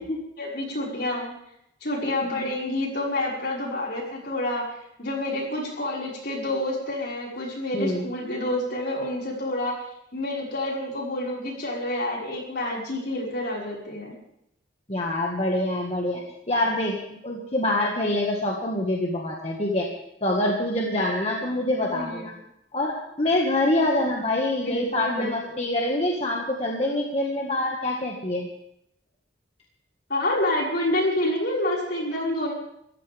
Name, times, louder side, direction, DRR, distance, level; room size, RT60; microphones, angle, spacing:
voice 1, 0.4-1.3 1.8-4.6 5.0-9.7 10.1-14.2 21.8-22.3 24.6-25.6 30.1-32.5, left 1 dB, 55° left, -3 dB, 5.5 m, -28 dB
voice 2, 7.7-8.1 14.9-16.2 16.5-19.9 20.2-22.3 22.7-28.5, left 1 dB, 35° left, -1 dB, 1.9 m, -25 dB
26.0 x 14.5 x 3.6 m, 0.77 s
head